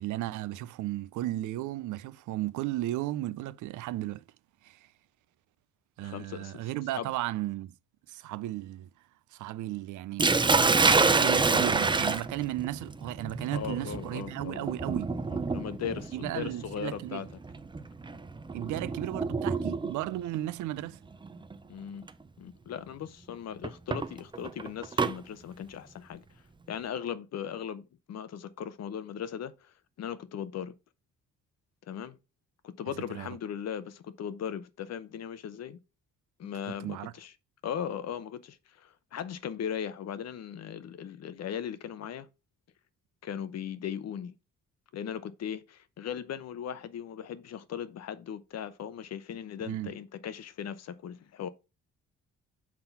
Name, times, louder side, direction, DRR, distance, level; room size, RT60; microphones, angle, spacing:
voice 1, 0.0-4.2 4.6-4.9 6.0-7.7 8.1-8.9 9.3-15.1 16.1-17.2 18.5-21.0 33.0-33.3 36.7-37.1 49.7-50.0, right 15 dB, 75° right, 0.5 m, -35 dB
voice 2, 6.0-6.6 6.9-7.1 13.5-14.6 15.5-17.3 21.7-22.1 22.4-26.2 26.7-30.7 31.9-32.2 32.6-35.8 36.4-37.3 37.6-42.3 43.2-44.3 44.9-51.5, left 8 dB, 60° left, 0.8 m, -38 dB
Sink (filling or washing), 10.2-20.1 21.2-21.6 22.1-22.2 23.6-25.1, right 4 dB, 15° right, 0.5 m, -27 dB
6.0 x 3.8 x 5.7 m
cardioid pair, 90°, 30 cm